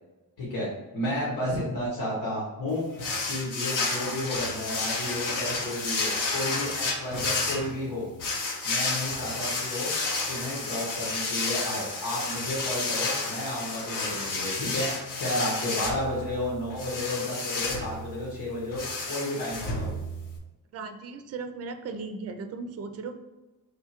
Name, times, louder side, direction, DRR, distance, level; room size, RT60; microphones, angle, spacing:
voice 1, 0.4-0.7 0.9-2.9 3.3-8.1 8.6-9.9 10.3-14.9 15.2-19.9, left 1 dB, 85° left, -6 dB, 1.4 m, -32 dB
sound 1, 3.0-20.4, left 3 dB, 60° left, 0.8 m, -31 dB
voice 2, 20.7-23.1, right 4 dB, 45° right, 7 dB, 0.4 m, -37 dB
3.6 x 2.4 x 4.3 m, 1.1 s
cardioid pair, 105°, 37 cm